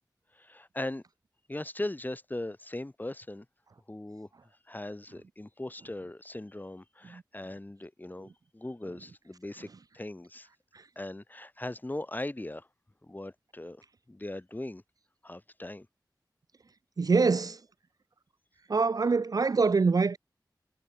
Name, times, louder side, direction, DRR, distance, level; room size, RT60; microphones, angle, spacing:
voice 1, 0.3-1.0 1.5-3.5 3.9-4.3 4.7-9.7 9.9-10.5 11.0-12.7 13.0-13.8 14.1-14.8 15.2-15.9, left 1 dB, 25° left, 5.4 m, -39 dB
voice 2, 17.0-17.6 18.7-20.2, right 4 dB, 55° right, 0.5 m, -24 dB
wide cardioid pair, 75°, 8 cm